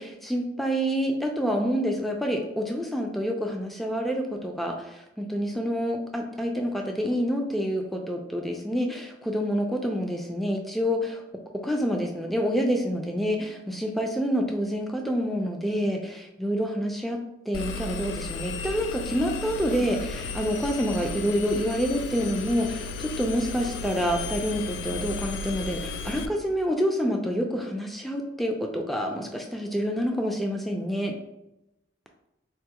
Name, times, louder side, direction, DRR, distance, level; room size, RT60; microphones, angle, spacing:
voice 1, 0.0-11.2 11.6-17.2 17.5-31.1, equal, ahead, 2 dB, 0.3 m, -27 dB
Engine, 17.5-26.3, left 3 dB, 90° left, 0.3 m, -34 dB
3.9 x 2.3 x 2.8 m, 0.90 s
head